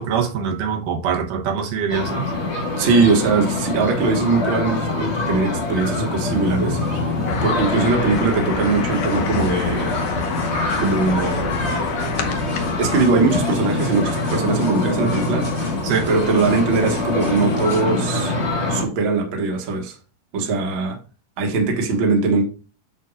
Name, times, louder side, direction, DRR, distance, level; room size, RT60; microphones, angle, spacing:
voice 1, 0.0-2.3 15.8-16.1, right 7 dB, 80° right, 2.6 m, -23 dB
sound 1, 1.9-18.8, left 2 dB, 45° left, 0.8 m, -24 dB
voice 2, 2.8-6.8 7.4-10.0 10.8-11.5 12.8-15.5 16.1-18.3 18.7-19.9 20.3-21.0 21.4-22.4, right 4 dB, 45° right, 1.9 m, -20 dB
sound 2, 6.3-17.8, left 1 dB, 25° left, 1.1 m, -39 dB
sound 3, 7.3-13.1, left 4 dB, 75° left, 1.2 m, -28 dB
8.2 x 6.8 x 2.4 m
omnidirectional pair, 3.8 m